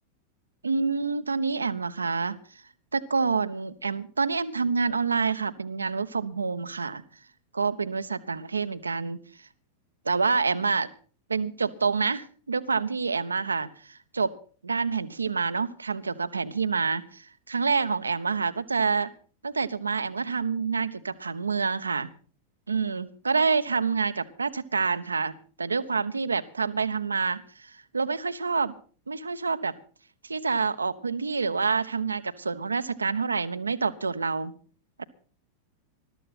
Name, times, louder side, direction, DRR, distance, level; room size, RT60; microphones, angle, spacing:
voice 1, 0.6-2.4 2.9-7.0 7.5-9.2 10.0-10.9 11.3-14.3 14.6-19.1 19.4-22.1 22.7-28.7 29.1-29.7 30.2-34.5 35.0-35.1, right 4 dB, 75° right, 12 dB, 1.0 m, -27 dB
21.0 x 13.0 x 4.2 m, 0.41 s
figure-of-eight pair, 90°, 0 cm